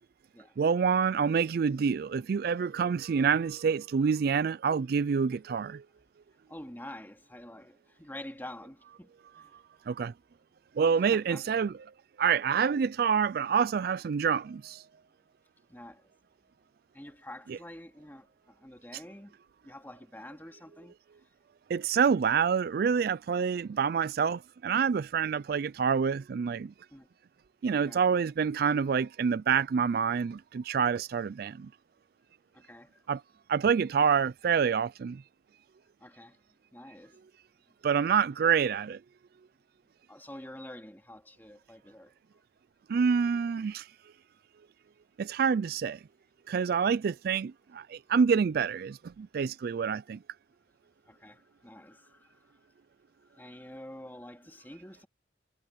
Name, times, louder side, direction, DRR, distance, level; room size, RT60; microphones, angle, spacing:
voice 1, 0.6-5.8 9.9-10.1 10.8-11.7 12.2-14.8 21.7-26.7 27.6-31.7 33.1-33.2 33.5-35.2 37.8-39.0 42.9-43.9 45.2-46.0 46.5-50.2, right 6 dB, 55° right, 0.3 m, -27 dB
voice 2, 6.5-9.6 11.1-11.4 15.7-16.1 16.9-19.4 19.6-20.9 26.9-27.1 27.7-28.1 32.5-33.0 36.0-36.4 36.7-37.2 40.1-42.1 51.1-52.6 53.2-55.1, left 1 dB, 10° left, 2.7 m, -47 dB
head